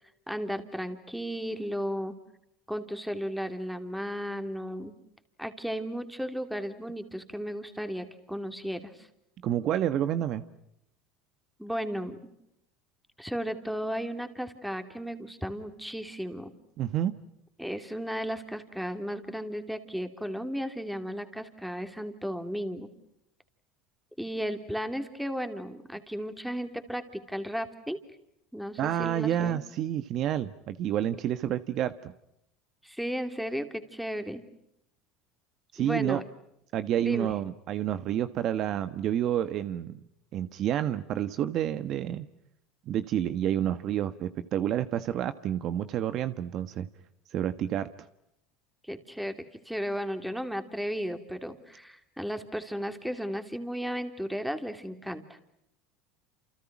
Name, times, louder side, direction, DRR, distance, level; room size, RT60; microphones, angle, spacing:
voice 1, 0.3-2.2 2.7-4.9 5.4-9.1 11.6-12.2 13.2-16.5 17.6-22.9 24.2-28.0 28.5-29.6 32.8-34.4 35.8-36.2 37.0-37.3 48.9-55.4, equal, ahead, 8 dB, 3.0 m, -34 dB
voice 2, 9.4-10.4 16.8-17.1 28.8-32.1 35.7-36.2 36.7-40.0 40.3-42.3 42.9-46.9 47.3-47.9, right 11 dB, 50° right, 12 dB, 1.4 m, -29 dB
29.5 x 28.5 x 6.1 m, 0.78 s
supercardioid pair, 120°, 0 cm